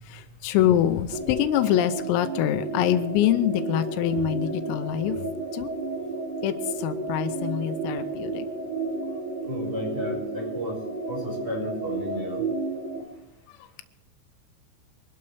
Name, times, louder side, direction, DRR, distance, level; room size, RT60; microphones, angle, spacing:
voice 1, 0.0-5.2 5.5-5.7 6.4-8.5 13.5-13.8, left 11 dB, 85° left, 10 dB, 3.5 m, -25 dB
sound 1, 1.1-13.0, right 3 dB, 55° right, 4.5 m, -32 dB
voice 2, 9.4-10.8 11.1-12.4, left 1 dB, 10° right, -3 dB, 5.6 m, -33 dB
24.5 x 12.5 x 3.4 m, 0.86 s
omnidirectional pair, 5.9 m